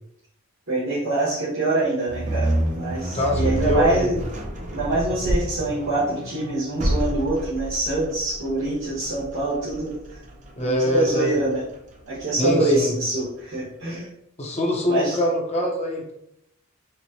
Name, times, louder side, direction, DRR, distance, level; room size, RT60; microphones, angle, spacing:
voice 1, 0.7-2.5 2.8-4.3 4.7-10.2 10.6-11.6 12.1-14.1 14.9-15.2, right 2 dB, 65° right, -11 dB, 1.2 m, -25 dB
sound 1, 2.1-13.2, right 1 dB, 35° right, 0.5 m, -29 dB
voice 2, 3.1-4.1 10.6-11.3 12.4-12.9 14.4-16.1, left 1 dB, 30° left, -1 dB, 0.7 m, -23 dB
4.4 x 2.2 x 2.7 m, 0.77 s
head